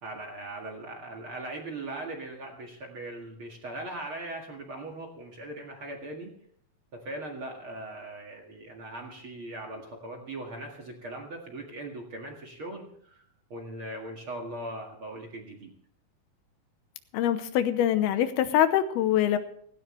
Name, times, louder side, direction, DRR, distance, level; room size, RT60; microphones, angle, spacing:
voice 1, 0.0-6.3 6.9-13.2 13.5-15.7, right 1 dB, 40° right, 1 dB, 2.1 m, -39 dB
voice 2, 17.1-19.4, left 11 dB, 80° left, 10 dB, 2.7 m, -24 dB
17.5 x 16.5 x 3.3 m, 0.65 s
omnidirectional pair, 4.6 m